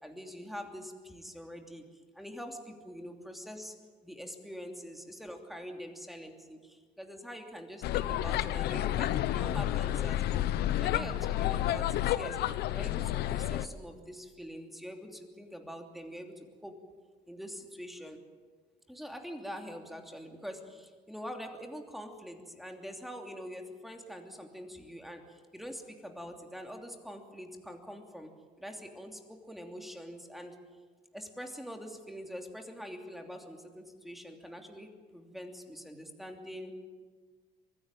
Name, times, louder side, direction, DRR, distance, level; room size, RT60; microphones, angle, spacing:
voice 1, 0.0-3.8 4.0-10.5 10.7-12.5 12.7-16.8 17.3-18.2 18.9-28.3 28.6-29.2 29.5-30.5 31.1-36.7, equal, ahead, 3 dB, 2.9 m, -44 dB
sound 1, 7.8-13.7, left 13 dB, 75° left, 0.9 m, -30 dB
23.5 x 16.0 x 9.0 m, 1.6 s
cardioid pair, 110°, 17 cm